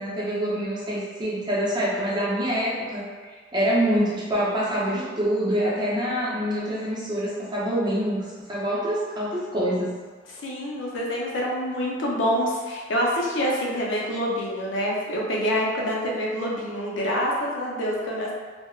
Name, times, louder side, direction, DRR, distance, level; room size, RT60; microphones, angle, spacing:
voice 1, 0.0-10.0, equal, 25° right, -6 dB, 0.6 m, -26 dB
voice 2, 10.4-18.3, equal, 75° left, -3 dB, 0.6 m, -26 dB
3.3 x 2.1 x 2.3 m, 1.5 s
head